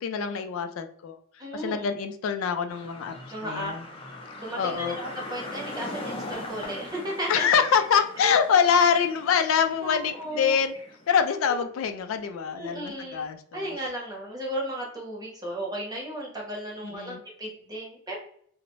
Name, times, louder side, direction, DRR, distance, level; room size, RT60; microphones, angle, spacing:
voice 1, 0.0-1.2 1.5-3.1 3.4-3.8 4.6-5.0 7.3-10.7 11.1-13.7 16.9-17.2, left 7 dB, 80° left, 8 dB, 0.3 m, -25 dB
voice 2, 1.4-1.9 3.3-3.7 4.4-7.5 9.8-10.6 11.5-11.6 12.5-13.3 13.5-18.2, right 1 dB, 20° right, -2 dB, 0.8 m, -35 dB
sound 1, 2.7-11.1, left 2 dB, 30° left, 0.5 m, -40 dB
2.5 x 2.0 x 3.0 m, 0.63 s
head